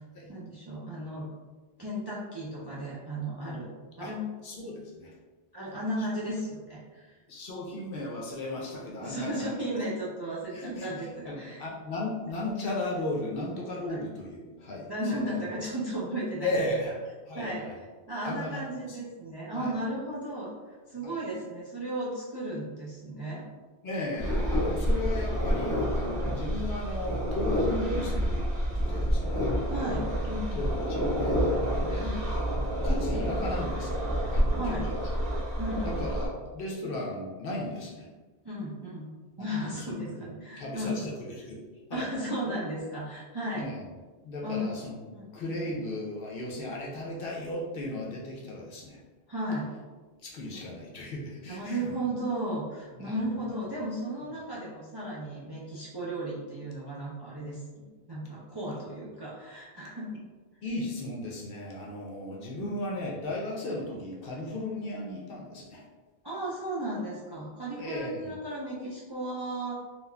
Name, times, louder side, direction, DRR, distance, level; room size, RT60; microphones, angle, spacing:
voice 1, 0.3-1.3 1.8-3.7 4.0-4.2 5.5-7.1 9.0-11.6 13.9-14.0 14.9-16.6 17.3-17.7 18.1-20.5 20.9-23.5 24.7-24.9 26.1-26.4 29.7-30.6 32.0-32.2 34.5-34.9 35.6-36.0 38.4-39.1 39.4-41.1 41.9-43.7 44.4-44.7 45.1-45.2 49.3-49.7 51.5-57.6 58.1-60.1 62.6-62.7 66.2-69.7, right 1 dB, 35° right, -7 dB, 0.4 m, -35 dB
voice 2, 4.4-5.1 7.3-9.5 10.5-15.3 16.4-17.0 17.3-17.8 18.2-19.0 19.5-19.8 21.0-21.2 23.8-28.4 28.8-29.5 30.5-31.4 31.8-32.2 32.8-34.1 34.3-35.0 35.8-38.1 39.4-40.3 40.6-41.6 41.9-42.1 43.5-43.8 44.2-49.0 50.2-51.9 53.0-53.5 60.6-65.8 67.8-68.3, left 1 dB, 60° left, -3 dB, 0.8 m, -36 dB
sound 1, 24.2-36.3, equal, 50° right, 1.2 m, -28 dB
3.8 x 2.4 x 2.2 m, 1.3 s
omnidirectional pair, 1.1 m